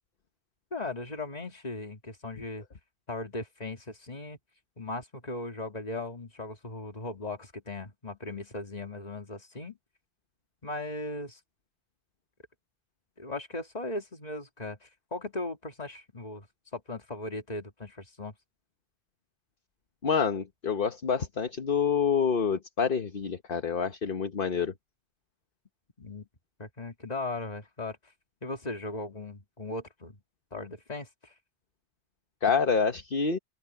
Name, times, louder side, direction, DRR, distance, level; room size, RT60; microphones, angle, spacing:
voice 1, 0.7-2.7 3.1-4.4 4.8-9.8 10.6-11.4 13.2-16.5 16.7-18.3 26.0-26.3 26.6-28.0 28.4-30.2 30.5-31.3, left 2 dB, 35° left, 2.2 m, -38 dB
voice 2, 20.0-24.7 32.4-33.4, left 6 dB, 50° left, 1.3 m, -27 dB
open air
omnidirectional pair, 1.2 m